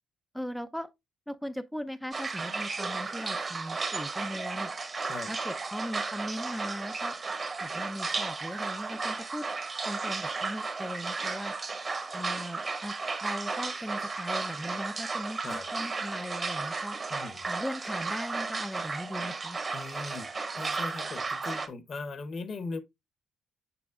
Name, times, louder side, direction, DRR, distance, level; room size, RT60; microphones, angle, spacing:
voice 1, 0.3-0.9 1.3-4.7 5.3-7.2 7.6-9.5 9.9-11.5 12.1-13.0 13.2-17.0 17.5-19.6, equal, ahead, 0.4 m, -38 dB
sound 1, 2.1-21.7, right 4 dB, 35° right, 1.1 m, -34 dB
voice 2, 17.1-17.4 19.7-20.3 20.6-22.8, left 3 dB, 50° left, 0.9 m, -39 dB
6.9 x 6.0 x 2.4 m
cardioid pair, 90°, 0 cm